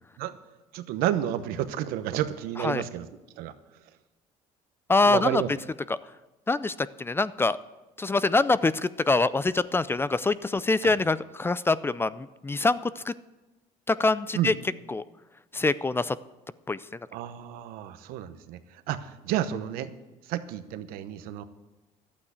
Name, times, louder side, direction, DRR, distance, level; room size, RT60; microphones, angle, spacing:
voice 1, 0.7-3.1 3.4-3.5 5.0-5.5 10.8-10.9 14.3-14.5 17.1-19.9 20.2-21.4, right 12 dB, 85° right, 11 dB, 0.9 m, -31 dB
voice 2, 4.9-5.4 5.9-6.0 6.5-7.6 8.0-13.1 13.9-14.5 14.9-15.0 15.5-16.2 16.7-16.8, left 3 dB, 15° left, 17 dB, 0.4 m, -24 dB
12.0 x 8.6 x 8.1 m, 1.1 s
cardioid pair, 110°, 15 cm